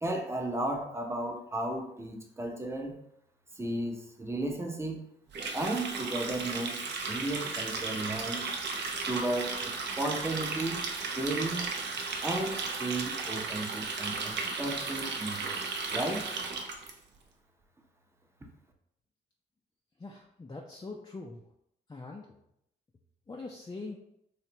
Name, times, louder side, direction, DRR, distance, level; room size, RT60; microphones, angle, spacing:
voice 1, 0.0-3.0 3.6-5.1 5.5-8.5 9.1-11.7 12.2-15.6 15.9-16.3, right 2 dB, 15° right, 2 dB, 0.7 m, -34 dB
Water tap faucet, 5.3-16.9, right 4 dB, 60° right, 0.6 m, -35 dB
voice 2, 20.0-21.4 21.9-22.3 23.3-24.0, left 3 dB, 20° left, -1 dB, 0.4 m, -42 dB
3.2 x 2.5 x 2.8 m, 0.76 s
supercardioid pair, 55°, 20 cm